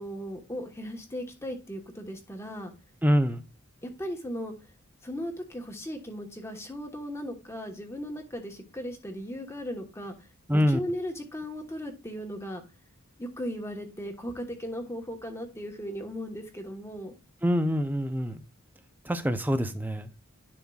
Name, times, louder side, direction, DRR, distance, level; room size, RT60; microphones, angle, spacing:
voice 1, 0.0-2.7 3.8-4.5 5.0-10.3 10.5-12.6 13.2-17.1, equal, 10° left, 1.2 m, -37 dB
voice 2, 3.0-3.4 10.5-10.8 17.4-18.4 19.0-20.1, equal, 10° right, 0.6 m, -25 dB
10.5 x 5.6 x 2.4 m
head